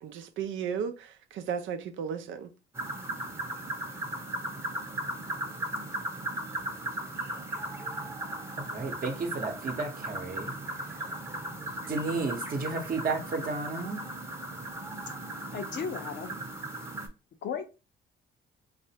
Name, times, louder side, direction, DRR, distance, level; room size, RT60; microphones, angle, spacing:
voice 1, 0.0-2.5, right 7 dB, 80° right, 0.5 m, -35 dB
sound 1, 2.7-17.1, right 1 dB, 15° right, 0.8 m, -37 dB
voice 2, 8.6-10.5 11.9-14.0, right 3 dB, 45° right, 0.9 m, -32 dB
voice 3, 15.5-16.4 17.4-17.7, left 7 dB, 65° left, 0.7 m, -35 dB
3.2 x 2.5 x 2.8 m
cardioid pair, 90°, 20 cm